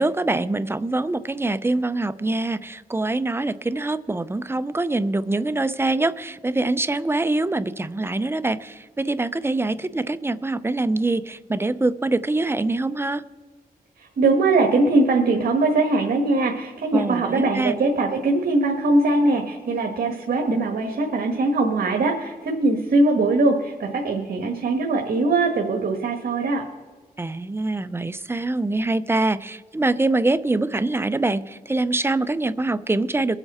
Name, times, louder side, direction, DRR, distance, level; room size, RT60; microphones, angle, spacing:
voice 1, 0.0-13.2 16.9-17.7 27.2-33.4, right 2 dB, 15° right, 13 dB, 0.5 m, -24 dB
voice 2, 14.2-26.6, right 2 dB, 80° right, 2 dB, 1.4 m, -21 dB
23.0 x 8.0 x 4.2 m, 1.4 s
wide cardioid pair, 90°, 16 cm